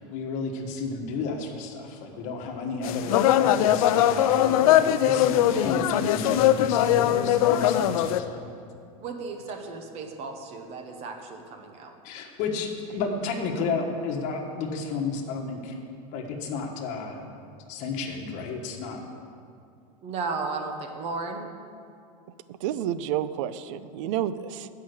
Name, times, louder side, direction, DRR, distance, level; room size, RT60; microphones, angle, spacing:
voice 1, 0.1-8.5 12.0-15.7 16.1-17.2 17.7-19.0, left 4 dB, 45° left, 1 dB, 1.3 m, -32 dB
sound 1, 2.8-8.2, left 12 dB, 85° left, 0.4 m, -21 dB
Keyboard (musical), 6.4-9.5, left 10 dB, 15° left, 0.6 m, -41 dB
voice 2, 9.0-11.9 20.0-21.5, right 4 dB, 35° right, 5 dB, 0.9 m, -34 dB
voice 3, 22.5-24.7, right 11 dB, 60° right, 14 dB, 0.5 m, -30 dB
8.3 x 5.7 x 7.9 m, 2.4 s
supercardioid pair, 155°, 18 cm